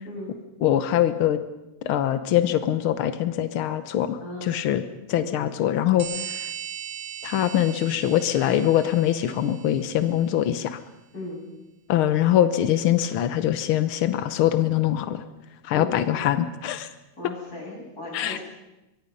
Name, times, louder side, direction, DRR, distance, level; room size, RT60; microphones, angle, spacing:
voice 1, 0.0-0.4 4.2-4.6 5.1-5.4 11.1-11.4 15.7-16.1 17.1-18.4, left 1 dB, 25° left, -2 dB, 8.1 m, -37 dB
voice 2, 0.6-1.4 1.8-4.8 5.1-6.5 7.2-10.8 11.9-15.2 15.6-16.9 18.1-18.4, left 11 dB, 75° left, 11 dB, 1.2 m, -23 dB
sound 1, 6.0-10.3, right 9 dB, 70° right, 3.1 m, -38 dB
23.5 x 23.5 x 5.3 m, 0.98 s
omnidirectional pair, 3.6 m